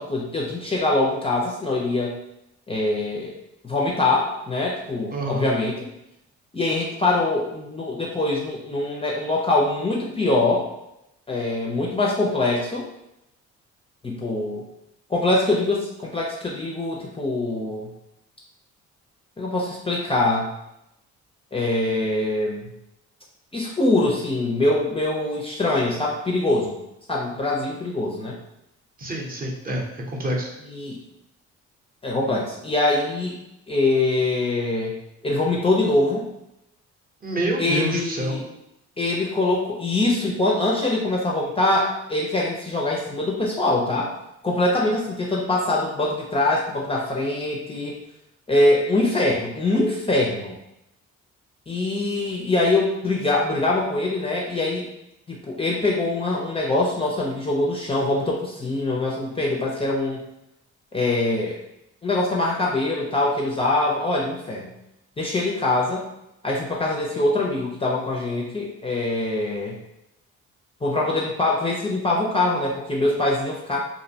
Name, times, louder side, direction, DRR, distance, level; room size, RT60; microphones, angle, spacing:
voice 1, 0.0-2.2 2.7-3.3 3.6-5.9 6.5-10.7 11.3-12.9 14.0-14.6 15.1-17.9 19.4-20.5 21.5-22.7 23.5-26.7 27.1-28.4 30.7-31.0 32.0-33.4 33.7-34.9 35.2-36.2 37.6-38.4 39.0-44.1 44.4-48.0 48.5-50.5 51.7-54.9 55.3-60.2 60.9-61.6 62.0-64.7 65.2-66.0 66.4-69.7 70.8-73.8, left 2 dB, 20° left, -3 dB, 0.4 m, -23 dB
voice 2, 5.1-5.5 29.0-30.5 37.2-38.4, right 1 dB, 30° right, -2 dB, 0.6 m, -27 dB
2.5 x 2.0 x 2.7 m, 0.85 s
cardioid pair, 90°, 30 cm